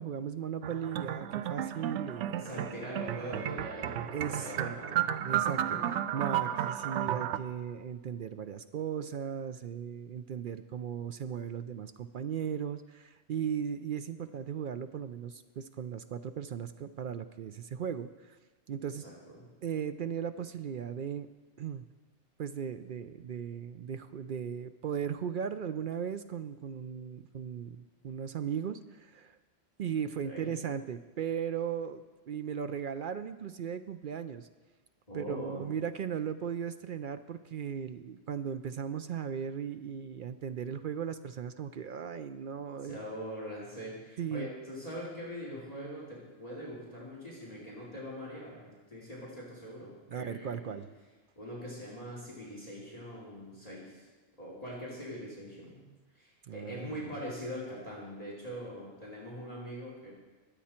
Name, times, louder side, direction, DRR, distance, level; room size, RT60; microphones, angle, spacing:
voice 1, 0.0-2.4 4.1-4.8 5.2-5.8 6.1-18.4 18.7-19.0 19.6-21.3 21.6-21.8 22.4-29.4 29.8-34.5 35.1-43.0 44.2-44.5 50.1-50.9 56.5-57.2, right 8 dB, 60° right, 10 dB, 0.6 m, -37 dB
sound 1, 0.6-7.4, right 10 dB, 75° right, 0.9 m, -33 dB
voice 2, 2.3-5.1 5.4-5.8 18.8-19.4 30.2-30.5 35.1-35.7 42.8-50.8 51.4-54.1 54.4-55.8 56.1-60.1, equal, 30° left, -5 dB, 3.1 m, -42 dB
22.0 x 8.5 x 4.4 m, 1.3 s
omnidirectional pair, 1.2 m